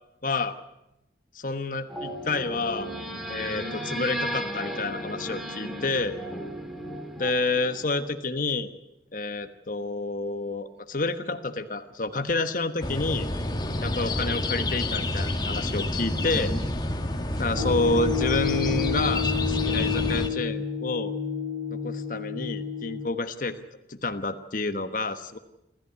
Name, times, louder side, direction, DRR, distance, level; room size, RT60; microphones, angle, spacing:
voice 1, 0.2-0.6 1.3-2.9 3.3-6.2 7.2-8.7 9.1-13.3 13.8-16.5 17.4-21.1 21.7-23.6 23.9-25.4, left 3 dB, 45° left, 8 dB, 1.3 m, -29 dB
sound 1, 1.9-8.1, equal, ahead, 2.7 m, -35 dB
sound 2, 12.8-20.3, left 1 dB, 25° left, 1.8 m, -28 dB
sound 3, 17.5-23.1, left 7 dB, 35° right, 3.2 m, -30 dB
27.5 x 14.5 x 9.5 m, 0.89 s
head